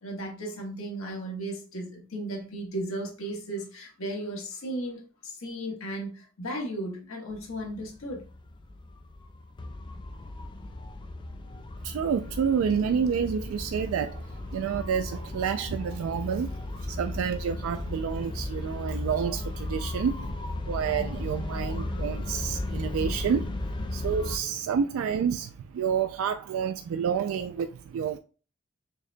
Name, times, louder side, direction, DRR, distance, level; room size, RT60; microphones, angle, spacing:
voice 1, 0.0-8.2 11.5-11.6, right 1 dB, 85° left, 1.1 m, -35 dB
sound 1, 7.3-24.4, left 2 dB, 25° left, 0.3 m, -35 dB
voice 2, 11.8-20.4 20.7-23.6 23.9-28.2, right 7 dB, 85° right, 0.3 m, -29 dB
6.4 x 2.1 x 2.5 m
head